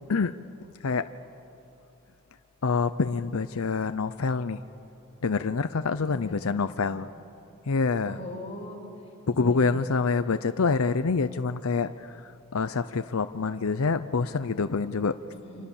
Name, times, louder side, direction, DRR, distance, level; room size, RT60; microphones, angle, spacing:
voice 1, 2.6-4.6 5.2-7.1 7.7-8.2 9.4-12.1 12.5-15.1, left 4 dB, 85° left, 11 dB, 0.6 m, -26 dB
voice 2, 6.0-7.0 8.0-8.8 9.0-9.9 15.3-15.7, left 1 dB, 30° left, -2 dB, 6.3 m, -42 dB
29.5 x 26.5 x 7.2 m, 2.8 s
head